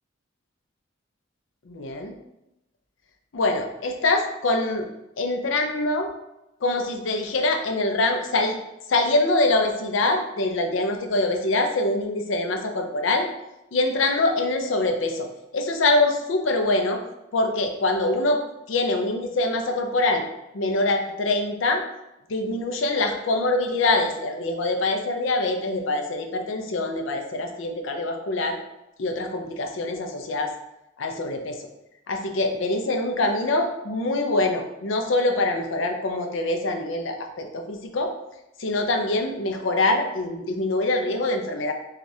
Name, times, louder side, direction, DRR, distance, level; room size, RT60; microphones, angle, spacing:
voice 1, 1.7-2.2 3.3-4.9 5.2-6.1 6.6-8.5 8.9-13.3 13.7-17.0 17.3-18.4 18.7-20.2 20.5-21.8 22.3-28.6 29.0-30.5 31.0-31.7 32.1-38.1 38.6-41.7, left 2 dB, 85° left, 4 dB, 0.5 m, -24 dB
4.9 x 2.4 x 2.7 m, 0.89 s
head